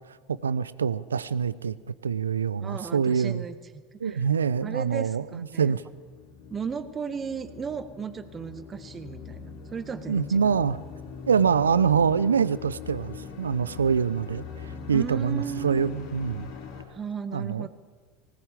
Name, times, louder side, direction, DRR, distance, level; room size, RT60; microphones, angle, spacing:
voice 1, 0.3-1.7 2.0-3.4 4.0-5.8 10.1-10.8 11.3-16.5 17.3-17.7, right 6 dB, 85° right, 18 dB, 0.6 m, -25 dB
voice 2, 2.6-3.6 3.9-4.2 4.6-5.7 6.5-10.5 14.9-16.0 16.9-17.7, right 6 dB, 30° right, 11 dB, 1.6 m, -35 dB
sound 1, 5.8-16.8, left 5 dB, 60° left, 3.5 m, -42 dB
20.0 x 18.0 x 8.3 m, 1.5 s
figure-of-eight pair, 75°, 0 cm